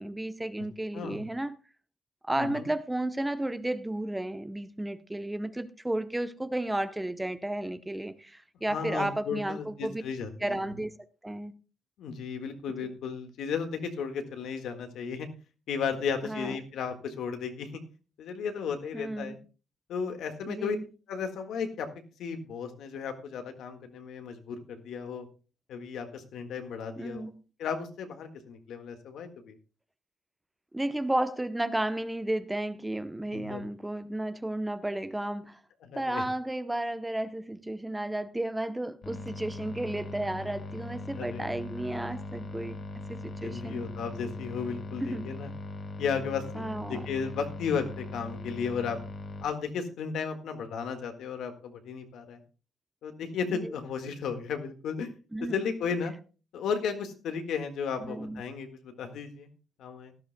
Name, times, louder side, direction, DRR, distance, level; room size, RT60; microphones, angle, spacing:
voice 1, 0.0-1.6 2.2-10.0 10.4-10.9 11.2-11.5 12.8-12.9 16.2-16.6 18.9-19.4 20.5-20.8 27.0-27.3 30.7-35.6 35.9-42.8 43.1-43.8 45.0-45.3 46.5-47.1 53.5-53.7 55.3-55.6 58.0-58.4, right 1 dB, 10° right, 0.7 m, -33 dB
voice 2, 0.9-1.2 2.3-2.7 8.7-10.6 12.0-15.3 15.7-17.8 18.2-19.4 19.9-20.8 21.1-21.9 22.2-25.2 25.7-27.2 27.6-29.6 33.3-33.6 35.8-36.2 41.1-41.5 43.4-45.5 46.0-49.0 49.4-52.4 53.0-55.1 55.5-56.1 56.5-59.5 59.8-60.1, left 6 dB, 75° left, 1.7 m, -34 dB
sound 1, 39.0-49.4, left 2 dB, 45° left, 1.5 m, -40 dB
17.0 x 11.5 x 2.2 m
cardioid pair, 90°, 0 cm